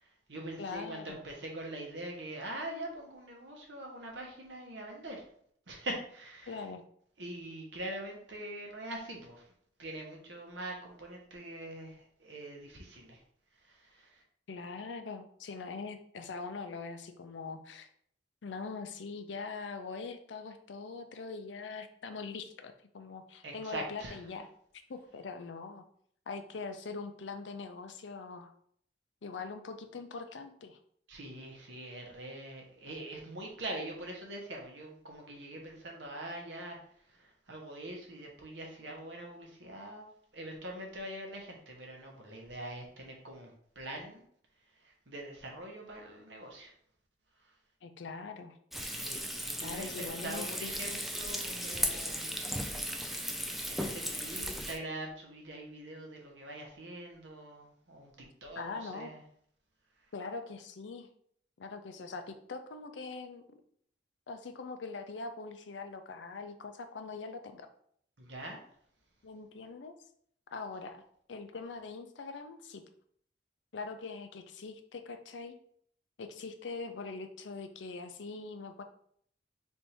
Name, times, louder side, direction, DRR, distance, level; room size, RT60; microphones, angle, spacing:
voice 1, 0.0-5.2 5.7-6.6 7.2-9.4 9.8-13.2 13.6-14.2 23.4-24.2 31.1-36.8 37.1-44.2 44.8-46.7 49.0-52.3 52.9-53.0 53.7-59.2 68.2-68.6, right 1 dB, 80° right, 0 dB, 1.1 m, -43 dB
voice 2, 0.6-1.2 6.5-6.8 14.5-17.9 18.4-24.5 24.9-25.8 26.3-28.5 29.2-30.8 47.8-48.6 49.6-50.9 58.6-59.1 60.1-61.1 61.6-63.6 64.3-67.7 69.2-69.9 70.5-71.0 71.3-72.8 73.7-75.6 76.2-78.8, left 4 dB, 90° left, 7 dB, 0.5 m, -42 dB
Frying (food), 48.7-54.8, equal, ahead, 0.3 m, -36 dB
3.4 x 2.7 x 4.3 m, 0.64 s
head